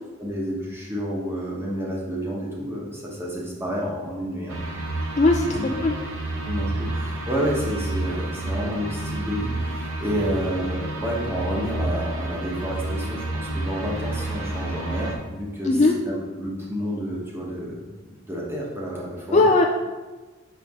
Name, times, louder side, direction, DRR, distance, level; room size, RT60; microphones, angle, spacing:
voice 1, 0.2-4.6 5.5-5.6 6.5-15.8 16.1-19.5, equal, 10° right, -4 dB, 1.1 m, -30 dB
sound 1, 4.5-15.1, right 2 dB, 80° right, 1.0 m, -29 dB
voice 2, 5.2-5.9 15.6-16.0 19.3-19.6, left 2 dB, 35° left, 2 dB, 0.4 m, -18 dB
6.4 x 4.6 x 3.6 m, 1.2 s
head